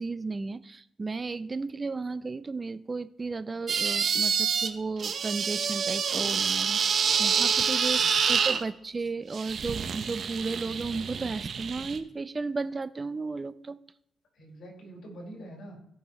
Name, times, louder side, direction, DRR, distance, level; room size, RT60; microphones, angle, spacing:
voice 1, 0.0-13.8, right 3 dB, 30° right, 14 dB, 0.6 m, -34 dB
sound 1, 3.7-4.7 5.0-8.6 9.3-12.0, right 6 dB, 55° right, 0.8 m, -27 dB
voice 2, 7.9-8.4 14.3-15.8, right 1 dB, 65° left, -1 dB, 4.3 m, -45 dB
17.0 x 5.9 x 3.1 m, 0.75 s
cardioid pair, 75°, 0 cm